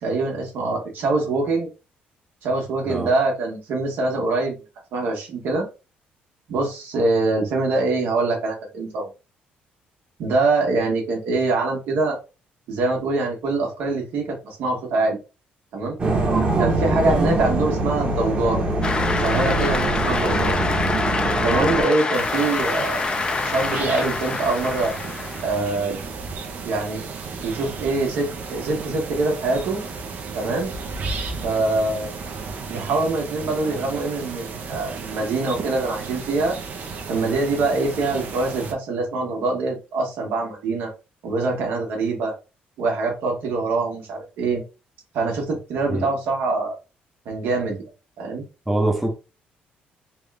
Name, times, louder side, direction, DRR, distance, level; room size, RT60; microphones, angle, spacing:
voice 1, 0.0-1.7 2.4-4.5 4.9-5.7 6.5-9.1 10.2-12.2 12.7-15.2 15.7-16.0 16.6-18.6 19.0-20.5 21.4-23.0 23.4-24.9 25.4-26.0 26.6-27.0 27.4-29.8 30.3-30.7 31.4-32.1 32.7-36.6 37.1-40.9 41.2-42.3 42.8-44.6 45.1-46.8 47.2-47.9 48.2-48.4, right 3 dB, 75° right, 1.4 m, -24 dB
sound 1, 16.0-21.8, right 2 dB, 30° right, 1.2 m, -23 dB
Cheering / Applause, 18.8-25.7, left 4 dB, 25° left, 0.5 m, -26 dB
sound 2, 22.1-38.7, right 4 dB, 55° right, 0.7 m, -34 dB
voice 2, 48.7-49.1, right 1 dB, 5° right, 0.7 m, -23 dB
3.5 x 2.4 x 3.3 m
cardioid pair, 120°, 4 cm